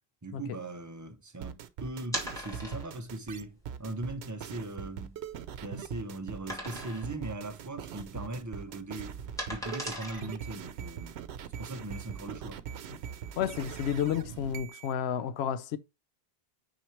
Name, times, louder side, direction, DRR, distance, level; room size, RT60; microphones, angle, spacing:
voice 1, 0.2-5.2 5.6-9.1 9.5-11.2 11.6-12.6, right 2 dB, 20° right, 0.7 m, -39 dB
sound 1, 1.4-14.9, right 8 dB, 90° right, 0.9 m, -41 dB
sound 2, 2.1-3.1 3.7-3.8 4.3-4.4 4.9-5.8 6.5-7.2 7.5-7.8 8.1-10.6, equal, 5° left, 2.3 m, -39 dB
voice 2, 13.4-15.8, left 9 dB, 85° left, 0.8 m, -31 dB
6.1 x 4.9 x 3.2 m
omnidirectional pair, 1.0 m